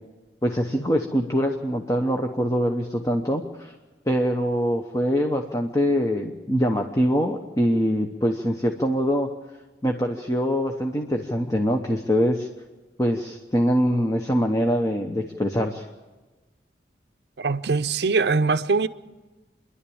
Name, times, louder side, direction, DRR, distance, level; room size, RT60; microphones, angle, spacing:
voice 1, 0.4-3.7 4.1-9.3 9.8-12.5 13.0-15.8, equal, 15° left, 1.0 m, -23 dB
voice 2, 17.4-18.9, right 4 dB, 65° right, 0.6 m, -22 dB
27.5 x 11.5 x 8.7 m
head